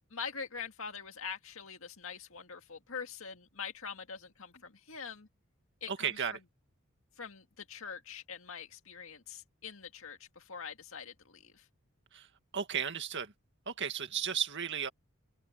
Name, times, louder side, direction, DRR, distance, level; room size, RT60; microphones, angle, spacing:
voice 1, 0.1-5.3 5.8-6.2 7.2-11.7, left 6 dB, 65° left, 2.1 m, -44 dB
voice 2, 5.9-6.4 12.1-12.3 12.5-13.3 13.7-14.9, right 7 dB, 55° right, 2.0 m, -34 dB
open air
head